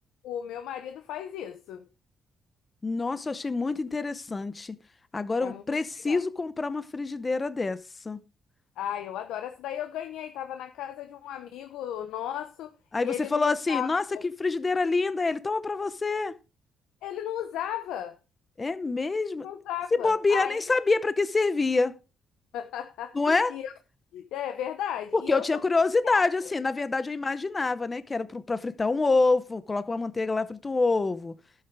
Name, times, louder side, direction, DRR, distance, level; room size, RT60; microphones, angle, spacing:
voice 1, 0.2-1.9 5.4-6.2 8.8-12.7 13.0-14.2 17.0-18.2 19.4-20.6 22.5-23.7 24.1-25.6 26.0-26.2, left 10 dB, 90° left, 0.9 m, -35 dB
voice 2, 2.8-4.8 5.1-8.2 12.9-16.3 18.6-19.5 19.9-21.9 23.1-23.5 25.1-31.3, left 3 dB, 25° left, 0.7 m, -26 dB
12.0 x 8.1 x 4.7 m
cardioid pair, 90°, 0 cm